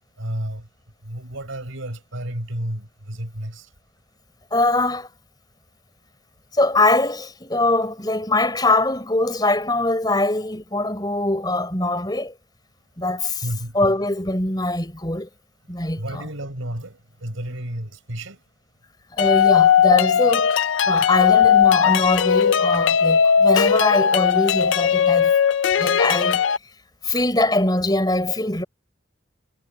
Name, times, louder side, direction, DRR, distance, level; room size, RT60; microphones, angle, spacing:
voice 1, 0.2-0.7 1.0-3.7 13.4-13.8 16.0-18.4, right 1 dB, 85° right, 5.2 m, -31 dB
voice 2, 4.5-5.1 6.5-12.3 13.0-13.4 13.7-15.3 15.7-16.3 19.1-25.3 25.8-26.4 27.0-28.6, left 2 dB, 20° left, 4.3 m, -22 dB
sound 1, 19.2-26.6, left 8 dB, 70° left, 0.4 m, -18 dB
head